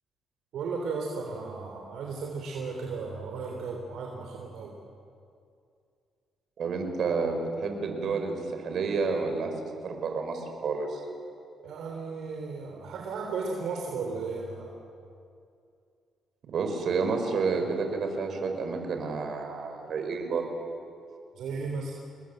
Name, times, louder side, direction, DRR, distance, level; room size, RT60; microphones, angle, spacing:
voice 1, 0.5-4.8 11.6-14.7 21.3-22.0, right 4 dB, 75° right, 1 dB, 3.3 m, -35 dB
voice 2, 6.6-9.5 9.8-11.0 16.5-20.5, right 4 dB, 60° right, 4 dB, 5.1 m, -30 dB
28.5 x 21.0 x 7.8 m, 2.4 s
cardioid pair, 90°, 0 cm